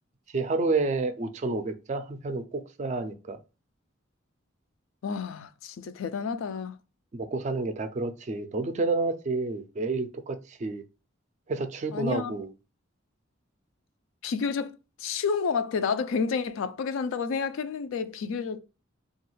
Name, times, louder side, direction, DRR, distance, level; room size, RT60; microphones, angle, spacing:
voice 1, 0.3-3.4 7.1-10.8 11.5-12.5, right 3 dB, 35° right, 0.3 m, -29 dB
voice 2, 5.0-6.8 11.9-12.3 14.2-18.6, left 5 dB, 80° left, 0.3 m, -30 dB
3.0 x 2.3 x 3.0 m
head